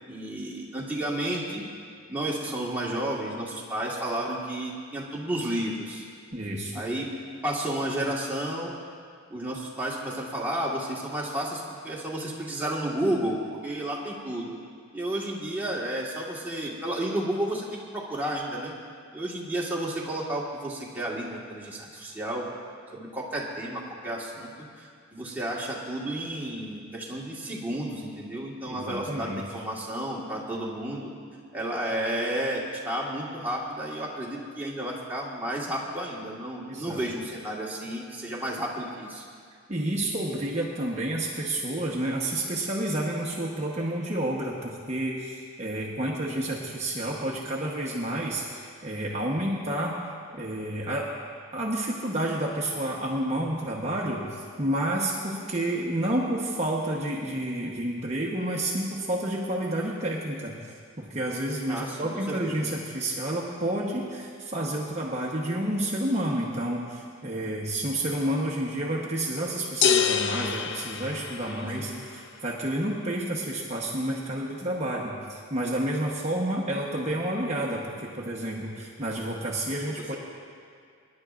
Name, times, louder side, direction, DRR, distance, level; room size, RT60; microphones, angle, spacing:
voice 1, 0.1-1.7 2.1-6.0 6.7-7.1 7.4-8.7 9.3-14.6 14.9-18.7 19.1-22.5 22.9-31.1 31.5-39.2 61.7-62.7 71.5-72.0 79.9-80.2, right 1 dB, 10° right, -5 dB, 1.5 m, -32 dB
voice 2, 6.3-6.9 28.7-29.4 36.7-37.0 39.7-50.0 50.3-51.1 51.5-80.2, right 1 dB, 30° right, -3 dB, 1.0 m, -30 dB
sound 1, 69.8-71.9, left 7 dB, 55° left, 0.5 m, -26 dB
25.0 x 10.5 x 2.5 m, 2.2 s
head